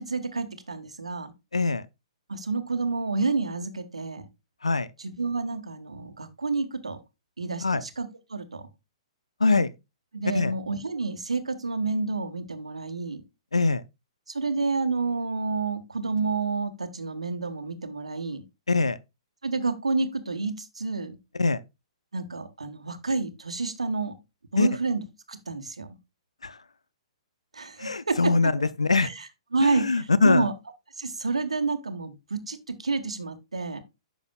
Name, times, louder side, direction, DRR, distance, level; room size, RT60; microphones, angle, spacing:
voice 1, 0.0-1.3 2.3-4.3 5.0-7.0 7.4-8.6 10.1-13.2 14.3-18.4 19.4-21.2 22.1-24.1 24.5-25.9 27.5-28.3 29.0-29.2 29.5-30.5 31.0-33.8, right 3 dB, 75° right, 1.2 m, -29 dB
voice 2, 1.5-1.9 4.6-4.9 7.6-7.8 9.4-9.7 10.3-10.5 13.5-13.8 18.7-19.0 21.4-21.6 24.6-24.7 26.4-26.6 27.8-28.5 28.8-29.1 29.6-30.5, left 3 dB, 75° left, 0.6 m, -22 dB
10.5 x 6.2 x 2.3 m
figure-of-eight pair, 115°, 3 cm